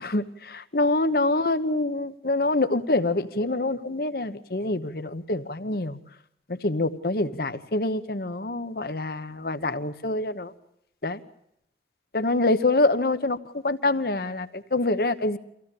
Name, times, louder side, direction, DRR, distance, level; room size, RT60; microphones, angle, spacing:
voice 1, 0.0-6.0 6.5-10.5 11.0-11.2 12.1-15.4, left 2 dB, 55° left, 11 dB, 1.0 m, -26 dB
25.0 x 16.0 x 8.5 m, 0.78 s
head